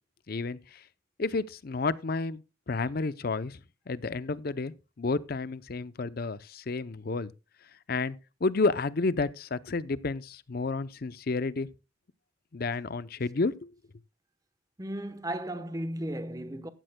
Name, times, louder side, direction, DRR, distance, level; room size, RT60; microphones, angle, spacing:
voice 1, 0.3-0.8 1.2-3.6 3.9-7.3 7.9-8.2 8.4-11.7 12.5-13.7, left 3 dB, 50° left, 0.6 m, -31 dB
voice 2, 14.8-16.7, right 1 dB, 20° right, 1.0 m, -35 dB
15.5 x 12.5 x 2.2 m
head